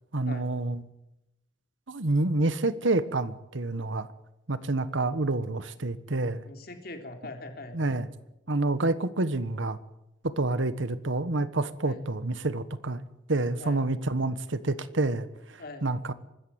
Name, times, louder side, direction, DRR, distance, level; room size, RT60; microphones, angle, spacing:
voice 1, 0.1-0.8 1.9-4.1 4.5-6.4 7.7-8.1 8.5-9.8 10.2-13.0 13.3-16.1, right 2 dB, 80° right, 14 dB, 1.3 m, -28 dB
voice 2, 6.4-7.8 11.8-12.0 13.6-13.8 15.6-15.9, left 2 dB, 50° left, 5 dB, 3.6 m, -42 dB
24.5 x 13.5 x 9.5 m, 0.92 s
head